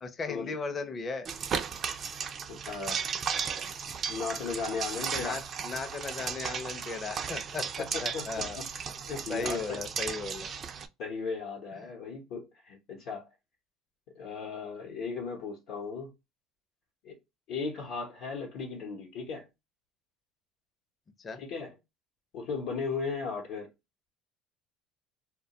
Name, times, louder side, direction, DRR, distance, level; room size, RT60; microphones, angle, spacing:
voice 1, 0.0-1.3 5.2-8.6 9.3-10.5 11.7-11.9 21.2-21.4, left 4 dB, 35° left, 0.5 m, -37 dB
sound 1, 1.2-10.9, right 6 dB, 45° right, 0.3 m, -35 dB
voice 2, 2.5-3.0 4.1-5.4 7.9-8.3 8.6-8.7 9.1-9.8 11.0-13.3 14.1-16.1 17.0-17.2 17.5-19.5 21.4-21.7 22.3-23.7, left 4 dB, 70° left, 0.7 m, -36 dB
2.2 x 2.2 x 2.8 m
supercardioid pair, 90°, 0 cm